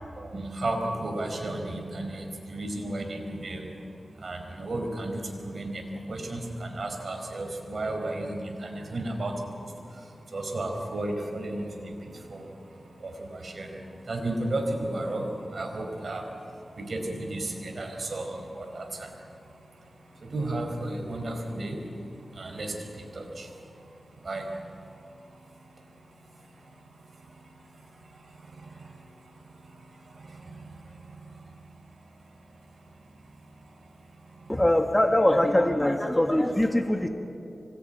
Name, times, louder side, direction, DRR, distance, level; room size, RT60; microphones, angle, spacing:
voice 1, 0.1-34.5, right 1 dB, 60° right, 3 dB, 4.9 m, -35 dB
voice 2, 34.5-37.1, left 1 dB, 15° left, 5 dB, 1.7 m, -22 dB
25.0 x 20.0 x 9.3 m, 2.7 s
cardioid pair, 60°, 0 cm